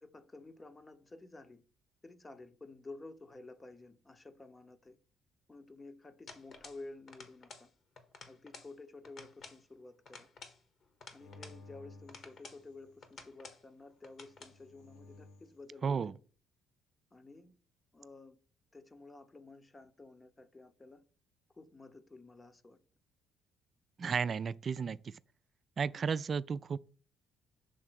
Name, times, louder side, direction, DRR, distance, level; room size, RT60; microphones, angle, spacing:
voice 1, 0.0-1.6 2.0-5.0 5.5-7.7 8.3-10.3 11.1-16.2 17.1-17.6 17.9-18.4 18.7-21.0 21.5-22.8 24.0-24.3 25.9-26.2, left 3 dB, 25° left, 0.8 m, -52 dB
sound 1, 6.3-6.8 7.1-7.7 8.0-8.7 9.0-9.6 10.0-11.6 12.1-12.6 13.0-13.6 14.0-14.6, left 4 dB, 55° left, 1.4 m, -52 dB
sound 2, 11.1-13.1 14.1-15.6, left 3 dB, 85° left, 1.3 m, -56 dB
voice 2, 15.8-16.1 24.0-25.1 25.8-26.8, right 6 dB, 45° right, 0.3 m, -33 dB
6.5 x 3.7 x 6.0 m
hypercardioid pair, 55°, 0 cm